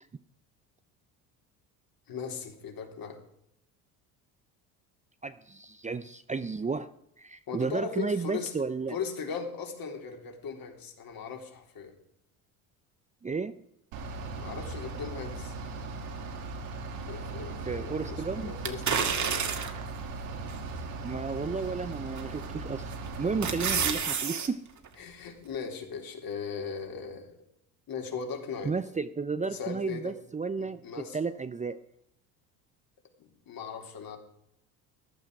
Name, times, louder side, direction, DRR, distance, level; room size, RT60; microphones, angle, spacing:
voice 1, 2.1-3.2 7.5-8.5 8.9-11.9 14.4-15.5 17.1-19.4 23.8-24.0 25.0-27.4 27.9-28.7 29.5-30.2 30.6-31.2 33.2-34.2, left 6 dB, 50° left, 3 dB, 3.6 m, -38 dB
voice 2, 5.2-6.9 7.2-8.9 13.2-13.6 17.6-18.5 21.0-22.9 23.2-24.6 28.6-31.8, right 4 dB, 15° right, 12 dB, 0.7 m, -33 dB
Bus / Idling, 13.9-23.9, right 3 dB, 75° right, 2.8 m, -38 dB
sound 1, 18.6-19.9 20.5-20.6 22.2-22.5 22.9-24.5 24.8-24.9, right 7 dB, 40° right, 2.1 m, -29 dB
15.5 x 11.5 x 4.8 m, 0.77 s
hypercardioid pair, 75°, 44 cm